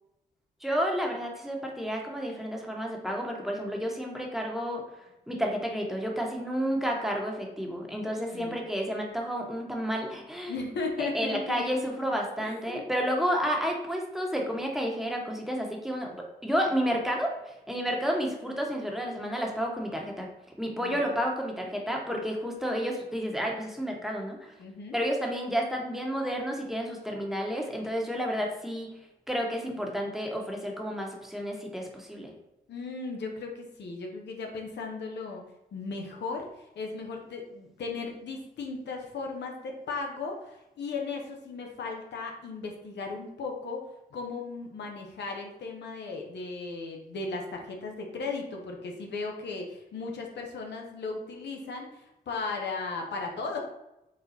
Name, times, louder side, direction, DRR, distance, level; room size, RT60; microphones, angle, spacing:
voice 1, 0.6-4.8 5.3-10.6 11.0-20.3 20.6-24.5 24.9-28.9 29.3-32.3, equal, ahead, 0 dB, 1.0 m, -31 dB
voice 2, 8.1-8.6 10.5-11.6 12.4-12.8 20.7-21.0 24.6-25.0 32.7-35.4 35.7-36.5 36.8-43.8 44.1-53.6, left 4 dB, 75° left, 1 dB, 0.7 m, -36 dB
4.2 x 2.2 x 3.9 m, 0.90 s
cardioid pair, 50°, 18 cm